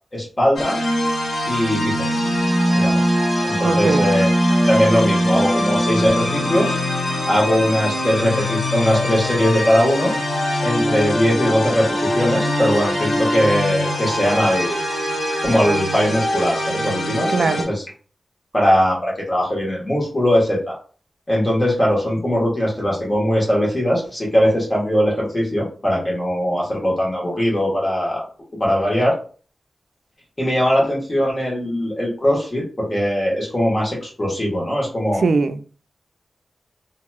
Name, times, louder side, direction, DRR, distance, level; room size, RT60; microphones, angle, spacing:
voice 1, 0.1-0.8 1.5-2.2 2.7-3.0 3.4-4.3 4.7-6.8 7.3-10.1 10.6-14.9 15.4-17.8 18.5-20.7 21.3-28.2 28.6-29.2 30.4-35.2, equal, 30° left, 1.4 m, -20 dB
sound 1, 0.6-17.6, equal, 85° left, 0.9 m, -22 dB
voice 2, 3.6-4.0 17.3-17.7 35.2-35.6, right 4 dB, 70° right, 0.3 m, -20 dB
2.9 x 2.8 x 2.3 m
wide cardioid pair, 95°, 0 cm